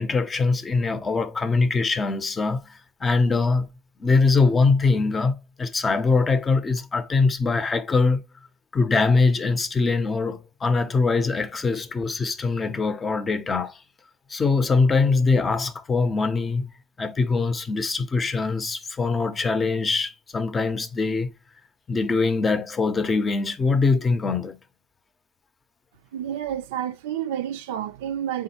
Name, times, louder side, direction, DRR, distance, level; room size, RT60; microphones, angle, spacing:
voice 1, 0.0-3.7 4.0-8.2 8.7-13.8 14.3-16.7 17.0-21.3 21.9-24.6, left 4 dB, 30° left, 0.6 m, -22 dB
voice 2, 26.1-28.4, right 10 dB, 85° right, 0.4 m, -29 dB
3.6 x 3.4 x 2.8 m
supercardioid pair, 85°, 0 cm